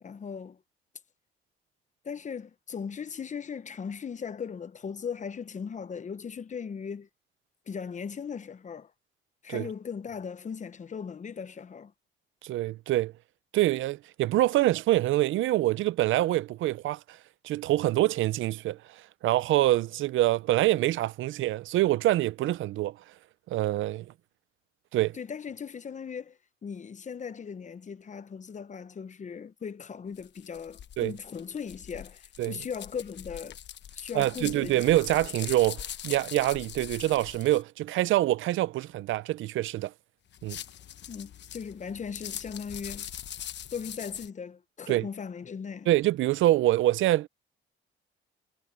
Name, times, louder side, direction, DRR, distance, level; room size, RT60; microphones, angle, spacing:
voice 1, 0.0-0.6 2.0-7.1 7.7-8.9 9.4-11.9 25.1-33.6 34.0-34.8 41.1-43.1 43.7-45.9, left 6 dB, 40° left, 0.9 m, -38 dB
voice 2, 12.4-13.1 13.5-17.2 17.4-23.0 23.5-24.1 24.9-25.2 31.0-31.1 32.4-32.6 34.1-39.9 40.4-40.6 44.9-45.1 45.9-47.3, right 15 dB, 80° right, 0.6 m, -25 dB
sound 1, 30.1-37.6 40.3-44.3, left 10 dB, 60° left, 1.1 m, -42 dB
cardioid pair, 90°, 20 cm